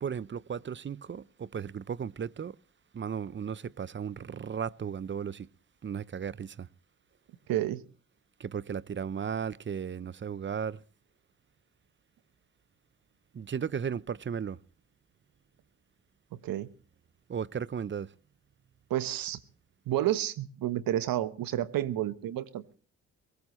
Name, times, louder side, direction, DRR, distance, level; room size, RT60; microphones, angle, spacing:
voice 1, 0.0-2.6 2.9-5.5 5.8-6.7 8.4-10.8 13.3-14.6 17.3-18.1, right 7 dB, 35° right, 0.7 m, -35 dB
voice 2, 7.5-7.8 16.3-16.7 18.9-19.4 19.9-22.8, right 12 dB, 75° right, 1.2 m, -30 dB
22.0 x 18.5 x 3.2 m
supercardioid pair, 60°, 36 cm